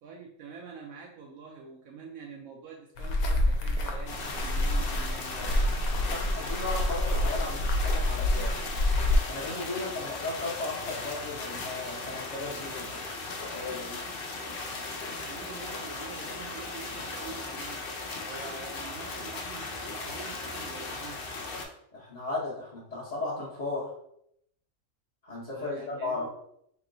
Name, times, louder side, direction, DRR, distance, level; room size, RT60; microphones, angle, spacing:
voice 1, 0.0-5.7 15.2-17.9 18.2-21.2 25.5-26.3, right 5 dB, 75° right, 0 dB, 0.9 m, -46 dB
sound 1, 3.0-9.2, left 1 dB, 85° left, 1.1 m, -27 dB
sound 2, 4.1-21.6, left 3 dB, 60° left, 0.6 m, -37 dB
voice 2, 6.1-8.5 9.3-12.9 13.4-14.0 21.9-23.9 25.2-26.3, left 3 dB, 30° left, -8 dB, 0.8 m, -35 dB
3.1 x 2.9 x 3.8 m, 0.73 s
omnidirectional pair, 1.5 m